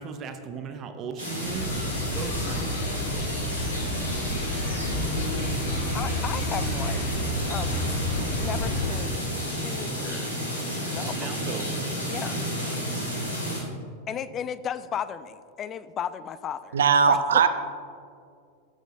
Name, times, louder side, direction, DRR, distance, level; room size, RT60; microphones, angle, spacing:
voice 1, 0.0-1.7 2.1-3.2 11.1-12.0, right 6 dB, 30° right, 7 dB, 0.8 m, -37 dB
sound 1, 1.2-13.6, equal, 85° left, 2.0 m, -31 dB
sound 2, 1.4-8.9, left 1 dB, 55° left, 1.5 m, -31 dB
voice 2, 5.9-7.1 7.5-9.2 9.5-10.3 10.6-11.3 12.1-12.4 14.1-16.8 17.1-17.2, left 8 dB, 30° left, 15 dB, 0.4 m, -35 dB
voice 3, 16.7-17.5, right 6 dB, 65° right, 10 dB, 0.5 m, -19 dB
14.5 x 7.7 x 2.6 m, 2.2 s
figure-of-eight pair, 90°, 0 cm